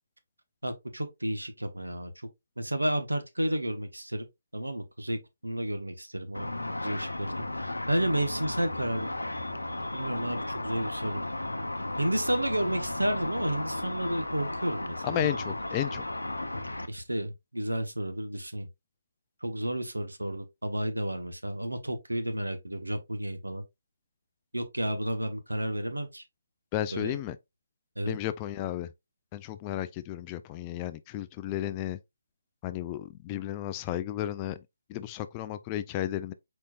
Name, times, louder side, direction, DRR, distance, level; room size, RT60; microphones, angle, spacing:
voice 1, 0.6-2.3 2.6-4.3 4.5-6.5 6.8-9.1 9.9-11.2 12.0-15.3 16.9-18.7 19.4-23.6 24.5-26.2 26.9-27.2 28.0-28.2, right 1 dB, 90° right, 1.1 m, -31 dB
Car / Traffic noise roadway noise / Engine, 6.3-16.9, left 2 dB, 85° left, 0.6 m, -35 dB
voice 2, 15.0-16.1 26.7-27.4 28.1-28.9 29.3-32.0 32.6-34.6 34.9-36.3, left 12 dB, 20° left, 0.3 m, -33 dB
4.4 x 4.2 x 2.3 m
figure-of-eight pair, 145°, 0 cm